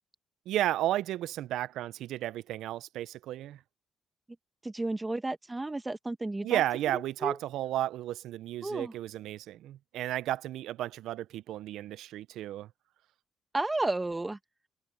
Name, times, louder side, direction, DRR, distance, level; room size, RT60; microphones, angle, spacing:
voice 1, 0.5-3.6 6.4-12.7, right 13 dB, 85° right, 0.4 m, -33 dB
voice 2, 4.6-6.6 6.9-7.3 8.6-8.9 13.5-14.4, right 2 dB, 15° right, 1.4 m, -32 dB
cardioid pair, 90°, 0 cm